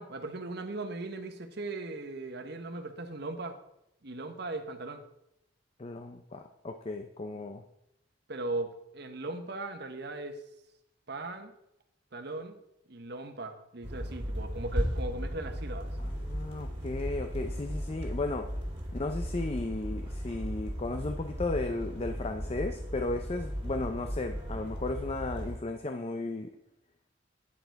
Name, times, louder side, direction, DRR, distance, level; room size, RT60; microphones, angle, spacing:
voice 1, 0.0-3.6 4.0-5.0 8.3-10.4 11.1-11.5 12.1-12.5 12.9-15.9, right 2 dB, 60° right, 7 dB, 1.1 m, -38 dB
voice 2, 5.8-7.6 16.0-18.5 18.9-26.5, left 2 dB, 35° left, 6 dB, 0.6 m, -35 dB
sound 1, 13.8-25.6, equal, 30° right, 2.5 m, -36 dB
10.0 x 6.7 x 4.7 m, 0.81 s
head